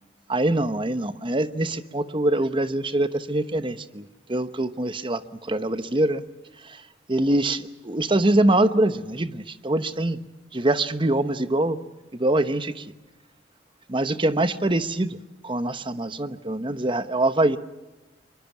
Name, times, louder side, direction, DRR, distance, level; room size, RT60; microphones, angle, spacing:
voice 1, 0.3-6.2 6.6-6.8 7.1-10.2 10.5-11.8 12.1-12.9 13.9-17.6, right 1 dB, 25° right, 11 dB, 1.0 m, -24 dB
25.0 x 23.0 x 7.2 m, 1.1 s
head